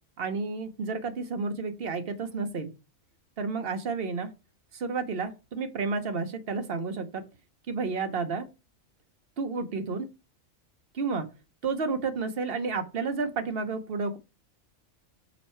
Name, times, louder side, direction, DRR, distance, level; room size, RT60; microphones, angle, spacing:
voice 1, 0.2-2.7 3.4-4.3 4.7-7.2 7.7-8.5 9.4-10.1 10.9-11.3 11.6-14.2, right 4 dB, 50° right, 8 dB, 0.9 m, -31 dB
5.5 x 4.3 x 4.4 m, 0.29 s
omnidirectional pair, 1.4 m